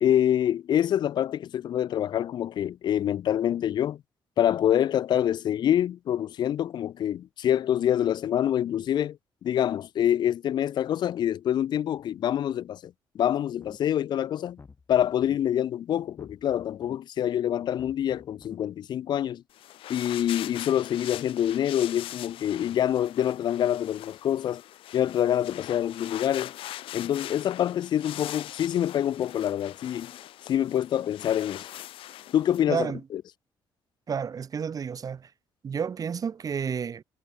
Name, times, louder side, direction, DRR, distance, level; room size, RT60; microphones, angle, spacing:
voice 1, 0.0-4.0 4.4-9.2 9.4-14.6 14.9-19.4 19.9-24.6 24.9-26.5 26.9-30.1 30.5-31.7 32.3-32.9 33.1-33.2, left 10 dB, 55° left, 0.3 m, -26 dB
sound 1, 13.5-14.0 14.4-15.4 16.0-17.0 17.6-18.6, left 4 dB, 30° left, 2.9 m, -51 dB
sound 2, 19.5-32.6, left 13 dB, 80° left, 1.3 m, -42 dB
voice 2, 32.7-33.0 34.1-35.3 35.6-37.0, right 6 dB, 40° right, 1.3 m, -31 dB
cardioid pair, 100°, 9 cm